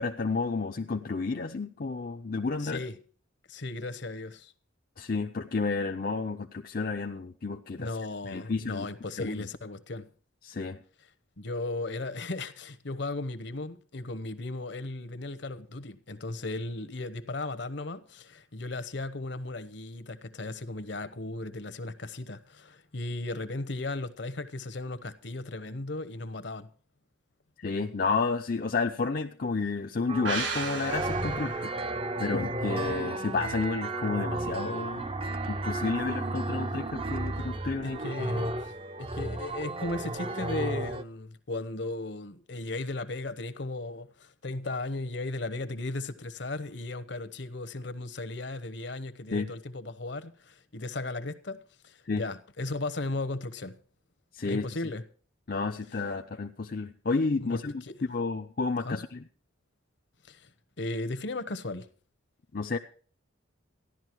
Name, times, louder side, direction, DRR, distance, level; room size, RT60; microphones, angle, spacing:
voice 1, 0.0-2.8 5.0-7.9 8.2-8.9 9.2-9.5 10.4-10.8 27.6-31.7 32.2-35.1 35.4-38.0 49.3-49.5 52.1-52.3 54.3-54.7 55.5-57.8 58.1-59.2 62.5-62.8, left 4 dB, 45° left, 0.6 m, -31 dB
voice 2, 2.6-3.0 3.5-4.5 7.8-10.1 11.4-26.7 37.8-38.7 39.0-53.8 54.4-55.0 57.4-57.6 57.9-58.0 58.8-59.0 60.2-60.5 60.8-61.9, left 2 dB, 60° left, 1.0 m, -36 dB
sound 1, 30.1-41.0, right 2 dB, 30° right, 0.6 m, -33 dB
sound 2, 30.2-33.7 34.0-34.1, right 4 dB, 65° right, 2.1 m, -38 dB
14.5 x 11.5 x 4.6 m
head